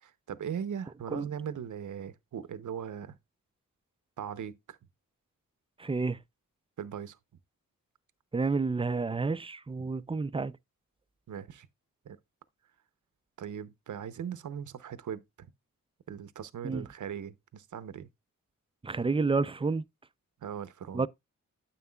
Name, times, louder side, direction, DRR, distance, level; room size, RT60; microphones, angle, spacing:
voice 1, 0.0-3.2 4.2-4.8 6.8-7.2 9.8-9.9 11.3-11.7 12.1-12.2 13.4-15.5 16.1-18.1 20.4-21.1, right 8 dB, 65° right, 0.7 m, -39 dB
voice 2, 5.8-6.2 8.3-10.5 16.6-16.9 18.8-19.8 20.9-21.1, right 4 dB, 15° right, 0.4 m, -29 dB
9.5 x 6.9 x 2.2 m
cardioid pair, 55°, 33 cm